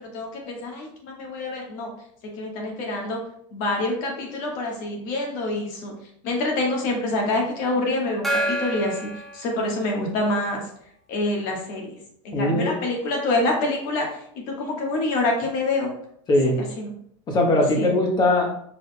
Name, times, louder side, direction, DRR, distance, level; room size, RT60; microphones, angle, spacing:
voice 1, 0.0-1.9 2.4-3.2 3.5-5.9 6.2-10.6 11.1-12.0 12.2-15.9 16.8-16.9 17.8-17.9, left 2 dB, 60° left, 0 dB, 1.3 m, -26 dB
Gong, 8.2-10.3, right 1 dB, ahead, 0.8 m, -29 dB
voice 2, 12.3-12.7 16.3-16.6 17.3-18.5, left 1 dB, 25° left, 1 dB, 1.0 m, -20 dB
4.7 x 3.5 x 2.2 m, 0.67 s
supercardioid pair, 135°, 15 cm